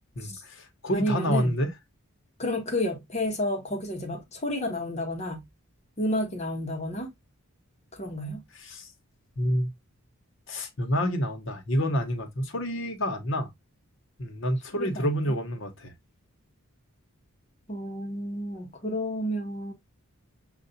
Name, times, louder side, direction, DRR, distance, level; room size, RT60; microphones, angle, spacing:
voice 1, 0.1-1.7 8.5-8.9 9.4-9.7 10.5-13.5 14.2-15.9, equal, 55° left, 1.0 m, -28 dB
voice 2, 0.9-1.6 2.4-5.4 6.0-7.1 7.9-8.4 14.8-15.3 17.7-19.7, left 1 dB, 30° left, 0.9 m, -31 dB
6.7 x 2.4 x 2.6 m
head